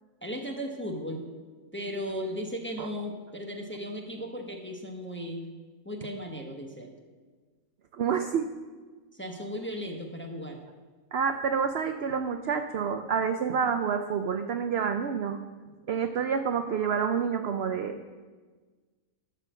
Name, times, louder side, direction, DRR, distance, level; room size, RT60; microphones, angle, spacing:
voice 1, 0.2-1.2 1.7-5.5 5.8-6.9 9.1-10.6, equal, 10° left, 2 dB, 0.8 m, -36 dB
voice 2, 8.0-8.5 11.1-15.4 15.9-18.0, right 6 dB, 65° right, 7 dB, 0.6 m, -28 dB
11.5 x 6.0 x 6.9 m, 1.4 s
omnidirectional pair, 1.6 m